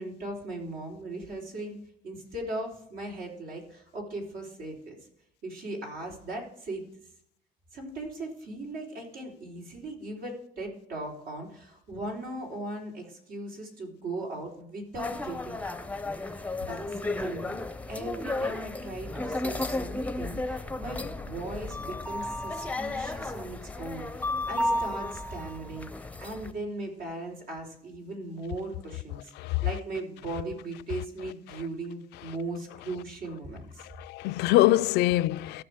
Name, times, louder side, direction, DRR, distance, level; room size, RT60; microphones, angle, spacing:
voice 1, 0.0-1.8 2.0-5.0 5.4-6.8 7.7-15.8 16.3-17.6 17.9-25.9 26.2-33.9, right 2 dB, 75° right, 3.8 m, -38 dB
sound 1, 15.0-26.5, left 2 dB, 10° left, 0.6 m, -33 dB
voice 2, 29.4-29.7 31.5-31.6 33.8-35.6, left 16 dB, 85° left, 0.4 m, -24 dB
14.5 x 6.3 x 3.5 m
cardioid pair, 110°, 17 cm